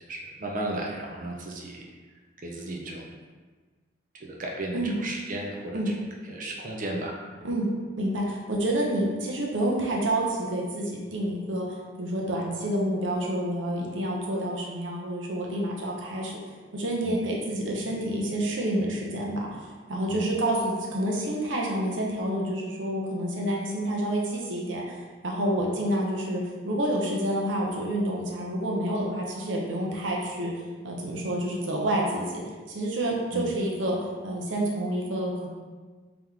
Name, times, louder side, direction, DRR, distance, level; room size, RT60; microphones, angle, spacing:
voice 1, 0.1-1.9 2.4-3.0 4.2-5.8 6.3-7.1 7.4-7.5 17.0-17.2 20.1-20.3 33.3-33.5, right 1 dB, 45° right, -1 dB, 0.6 m, -34 dB
voice 2, 8.0-11.7 12.0-16.4 16.7-25.0 25.2-30.5 30.8-32.4 32.7-34.0 34.2-35.5, right 1 dB, 75° right, -2 dB, 0.8 m, -28 dB
3.6 x 3.0 x 3.6 m, 1.4 s
head